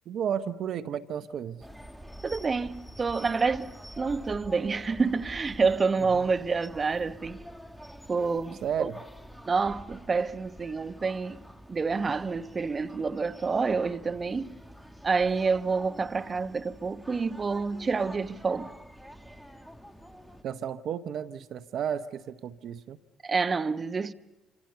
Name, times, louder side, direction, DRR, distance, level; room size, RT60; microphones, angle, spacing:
voice 1, 0.1-1.7 6.1-6.3 8.6-9.0 20.4-23.0, right 8 dB, 60° right, 0.8 m, -33 dB
sound 1, 1.6-20.4, equal, ahead, 2.1 m, -47 dB
voice 2, 2.2-7.4 8.1-8.9 9.5-11.4 11.7-14.6 15.0-18.7 23.2-24.1, right 4 dB, 35° right, 1.0 m, -28 dB
28.0 x 26.0 x 6.9 m
hypercardioid pair, 50°, 0 cm